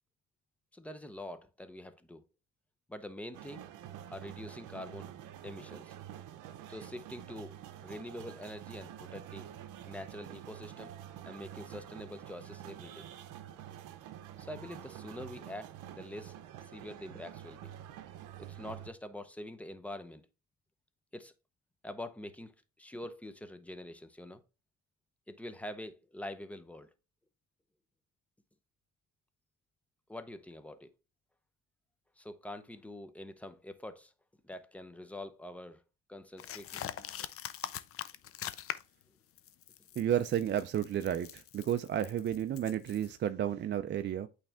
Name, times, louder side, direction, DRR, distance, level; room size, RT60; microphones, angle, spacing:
voice 1, 0.7-2.2 2.9-3.7 4.1-5.1 5.4-5.9 6.7-7.5 7.8-9.5 9.8-10.9 11.3-13.1 14.4-16.4 16.7-17.7 18.4-20.3 21.1-21.3 21.8-22.5 22.8-24.4 25.3-26.9 30.1-30.9 32.2-34.1 34.4-35.8 36.1-36.8, left 1 dB, 5° left, 0.6 m, -45 dB
sound 1, 3.3-18.9, right 11 dB, 80° right, 0.8 m, -48 dB
sound 2, 36.4-39.0 39.4-43.1, left 11 dB, 45° left, 0.5 m, -43 dB
voice 2, 40.0-44.3, right 10 dB, 35° right, 0.4 m, -32 dB
8.8 x 3.3 x 3.5 m
cardioid pair, 115°, 31 cm